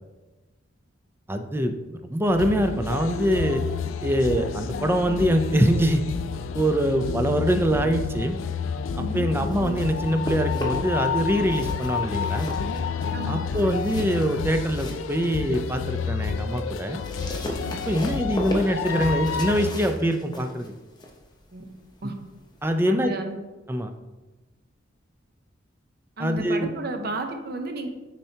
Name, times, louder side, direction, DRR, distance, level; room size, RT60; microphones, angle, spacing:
voice 1, 1.3-3.6 4.0-6.0 6.5-8.4 9.1-12.5 13.3-17.0 17.9-20.7 22.6-23.1 23.7-23.9 26.2-26.7, equal, 10° right, 6 dB, 0.4 m, -24 dB
sound 1, 2.3-19.7, left 6 dB, 85° left, 0.4 m, -30 dB
voice 2, 9.0-9.3 13.1-13.7 17.6-18.0 21.5-21.6 22.0-22.1 22.9-23.4 26.2-27.9, right 2 dB, 55° right, 5 dB, 0.7 m, -33 dB
sound 2, 9.2-11.1 11.4-15.8 16.2-22.8, equal, 20° left, 0.8 m, -37 dB
9.0 x 4.4 x 2.8 m, 1.1 s
head